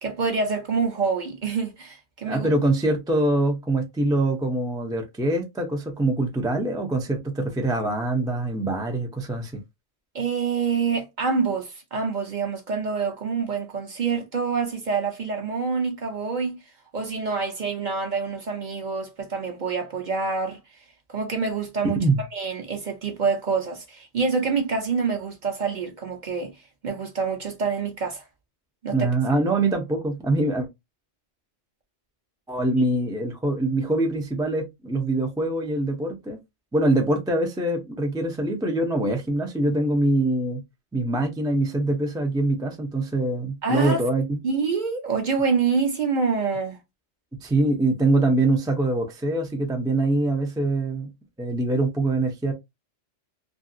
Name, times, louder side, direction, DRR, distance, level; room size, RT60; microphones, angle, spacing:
voice 1, 0.0-2.5 10.1-16.6 16.9-20.6 21.1-22.0 22.3-26.5 26.8-28.2 28.8-29.1 32.8-32.9 43.6-44.0 44.4-46.8, right 5 dB, 45° right, 0.7 m, -26 dB
voice 2, 2.2-9.6 22.0-22.2 28.9-30.7 32.5-36.4 36.7-40.6 40.9-44.4 47.4-51.1 51.4-52.5, right 2 dB, 5° right, 0.3 m, -24 dB
2.8 x 2.6 x 2.5 m
omnidirectional pair, 1.2 m